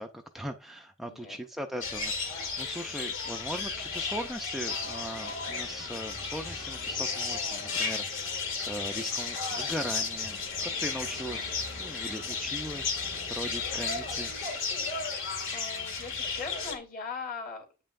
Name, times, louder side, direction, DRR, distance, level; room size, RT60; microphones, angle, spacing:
voice 1, 0.0-14.3, equal, ahead, 3 dB, 0.5 m, -39 dB
voice 2, 1.1-1.4 15.5-17.6, left 4 dB, 40° left, 3 dB, 2.7 m, -40 dB
sound 1, 1.8-16.8, left 4 dB, 60° left, 2.0 m, -34 dB
9.5 x 5.4 x 2.5 m, 0.32 s
head